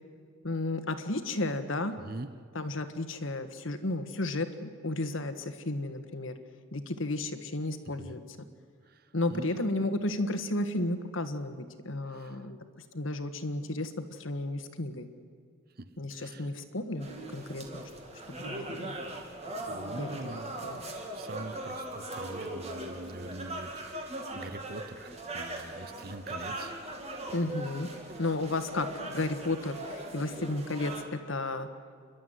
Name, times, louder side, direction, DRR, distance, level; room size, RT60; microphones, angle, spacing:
voice 1, 0.4-2.0 2.5-6.3 6.7-8.2 9.1-12.6 12.9-15.1 16.0-17.8 18.4-18.9 20.0-20.8 27.3-27.9 28.2-31.7, left 2 dB, 70° left, 9 dB, 1.6 m, -33 dB
voice 2, 8.9-9.7 12.1-12.5 15.8-16.5 19.7-20.5 21.1-26.8, right 2 dB, 45° right, 13 dB, 0.9 m, -44 dB
sound 1, 17.0-31.0, right 1 dB, 30° right, 2.8 m, -40 dB
29.0 x 12.0 x 9.5 m, 2.1 s
head